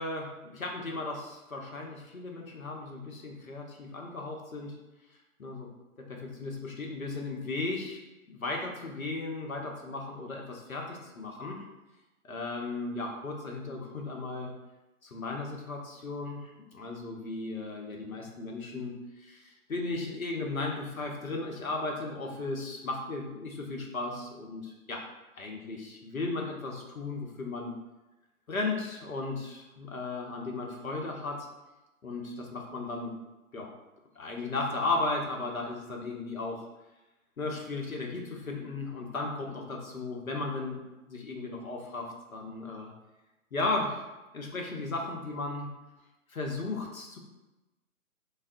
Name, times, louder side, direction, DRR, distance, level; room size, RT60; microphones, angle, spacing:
voice 1, 0.0-4.8 5.4-5.7 6.0-8.0 8.3-11.6 12.2-14.5 15.0-25.1 25.4-27.8 28.5-31.5 32.0-33.2 33.5-33.7 34.2-36.7 37.4-42.9 43.5-44.0 44.3-45.8 46.3-47.2, left 3 dB, 70° left, 1 dB, 0.7 m, -35 dB
3.3 x 2.0 x 2.6 m, 1.0 s
figure-of-eight pair, 140°, 43 cm